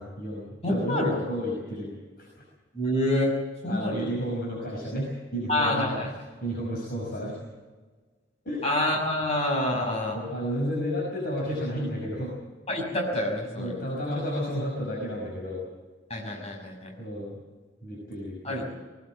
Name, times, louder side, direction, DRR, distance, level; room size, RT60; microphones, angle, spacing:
voice 1, 0.0-1.9 2.2-2.3 3.7-7.4 8.4-8.6 10.1-12.3 13.6-15.6 17.0-17.4 17.8-18.8, equal, 50° left, -3 dB, 5.6 m, -32 dB
voice 2, 0.6-1.1 2.7-3.3 3.6-4.1 5.5-6.1 8.6-10.2 12.7-13.8 16.1-16.9 18.4-18.6, left 1 dB, 35° left, 0 dB, 5.9 m, -27 dB
20.5 x 18.5 x 7.5 m, 1.4 s
head